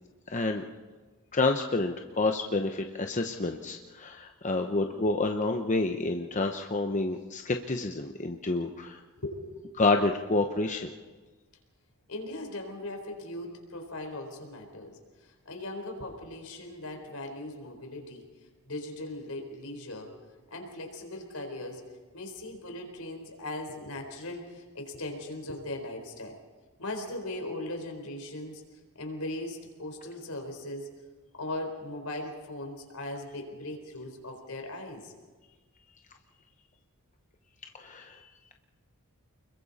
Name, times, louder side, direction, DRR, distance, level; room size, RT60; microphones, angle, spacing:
voice 1, 0.3-0.6 1.3-9.0 9.8-10.9 37.7-38.5, left 3 dB, 35° left, 4 dB, 0.9 m, -29 dB
voice 2, 12.1-18.3 18.6-20.1 20.5-21.8 22.1-26.4 26.8-28.6 28.9-30.9 31.4-35.1, left 1 dB, 75° left, 4 dB, 4.2 m, -39 dB
30.0 x 22.0 x 4.2 m, 1.4 s
head